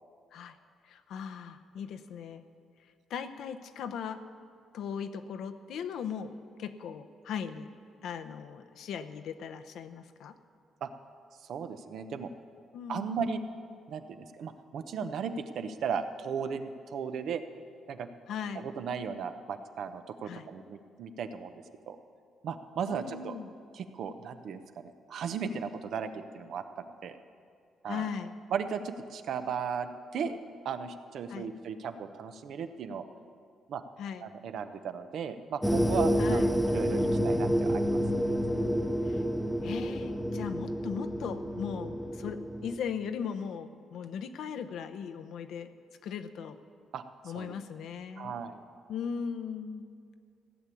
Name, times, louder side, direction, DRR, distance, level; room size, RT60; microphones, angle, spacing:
voice 1, 0.8-2.4 3.1-4.2 4.7-6.3 6.6-7.7 8.0-10.3 12.7-13.1 18.3-18.7 20.2-20.5 22.9-23.5 27.8-28.4 31.3-31.5 34.0-34.3 36.2-36.6 39.0-39.2 39.6-45.7 46.0-46.6 47.2-48.3 48.9-49.9, left 7 dB, 75° left, 10 dB, 0.8 m, -38 dB
voice 2, 11.4-12.3 12.9-13.4 13.9-17.4 17.9-18.1 18.5-22.0 22.4-23.3 23.7-27.2 27.8-28.1 28.5-30.4 30.6-33.1 33.7-33.8 34.2-38.0 46.9-47.0 47.3-47.5 48.2-48.6, right 6 dB, 70° right, 9 dB, 0.9 m, -36 dB
sound 1, 35.6-42.8, equal, ahead, 0.8 m, -29 dB
15.5 x 7.0 x 9.8 m, 2.3 s
cardioid pair, 90°, 0 cm